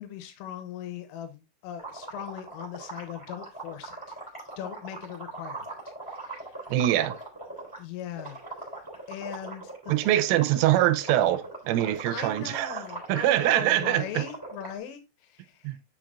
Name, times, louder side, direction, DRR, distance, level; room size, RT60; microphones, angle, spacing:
voice 1, 0.0-4.2 4.6-5.8 6.1-6.7 7.8-8.4 9.1-9.9 12.1-15.8, left 9 dB, 90° left, 3.5 m, -40 dB
sound 1, 1.8-7.8 8.1-14.7, right 3 dB, 5° left, 2.1 m, -40 dB
voice 2, 6.7-7.2 9.9-12.8 13.1-14.3 15.6-15.8, right 13 dB, 85° right, 3.2 m, -24 dB
8.8 x 5.8 x 2.6 m
omnidirectional pair, 5.8 m